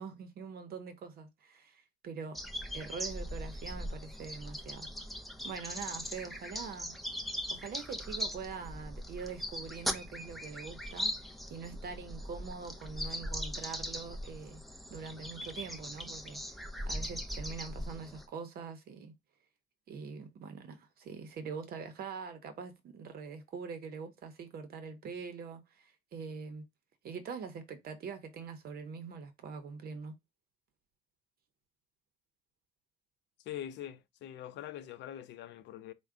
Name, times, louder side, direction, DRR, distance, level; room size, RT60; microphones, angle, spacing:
voice 1, 0.0-2.4 2.7-4.9 5.4-6.9 7.5-14.6 14.9-16.4 16.9-19.1 19.9-26.6 27.0-30.1, right 5 dB, 50° right, 0.7 m, -44 dB
sound 1, 2.4-18.3, equal, ahead, 0.5 m, -40 dB
voice 2, 33.4-35.9, left 11 dB, 60° left, 0.6 m, -43 dB
4.5 x 2.2 x 3.6 m
cardioid pair, 140°, 20 cm